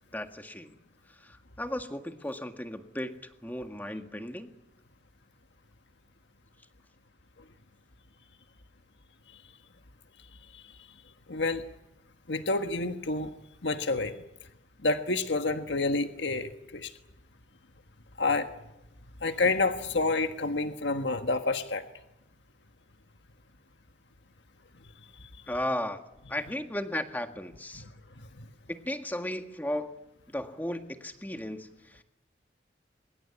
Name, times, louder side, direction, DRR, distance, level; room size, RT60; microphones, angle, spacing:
voice 1, 0.1-0.8 1.2-4.5 25.5-26.0 26.3-27.8 28.7-29.9 30.3-32.0, left 1 dB, 10° left, 6 dB, 1.8 m, -35 dB
voice 2, 11.3-11.6 12.3-13.3 13.6-14.1 14.8-16.9 18.2-18.5 19.2-21.8 27.7-27.8 28.4-28.5, left 3 dB, 85° left, 7 dB, 1.5 m, -28 dB
23.5 x 21.5 x 9.7 m, 0.88 s
head